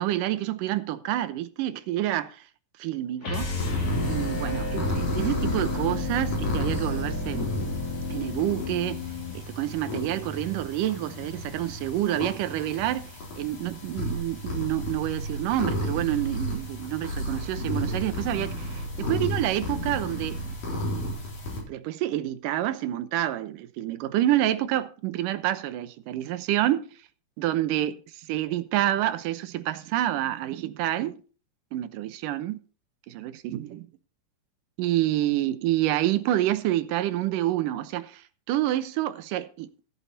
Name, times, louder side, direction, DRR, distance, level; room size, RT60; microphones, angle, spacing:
voice 1, 0.0-2.4 2.8-3.5 4.0-7.5 8.1-9.0 9.3-20.4 21.7-26.8 27.4-31.2 31.7-32.6 33.1-33.8 34.8-39.7, right 13 dB, 85° right, 2.4 m, -28 dB
sound 1, 3.2-9.4, left 4 dB, 45° left, 3.3 m, -32 dB
sound 2, 3.5-21.6, equal, 65° left, 5.6 m, -32 dB
14.5 x 8.5 x 4.3 m
omnidirectional pair, 3.8 m